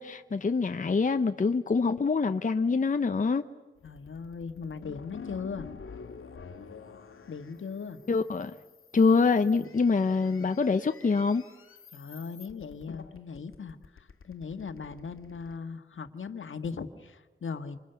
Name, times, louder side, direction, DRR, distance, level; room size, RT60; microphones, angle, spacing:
voice 1, 0.0-3.4 8.1-8.5 8.9-11.4, left 4 dB, 40° left, 0.7 m, -25 dB
sound 1, 3.8-15.6, left 6 dB, 85° left, 1.8 m, -49 dB
voice 2, 3.8-5.7 7.3-8.0 11.9-17.8, left 5 dB, 70° left, 1.6 m, -39 dB
27.0 x 26.5 x 7.0 m
wide cardioid pair, 120°, 21 cm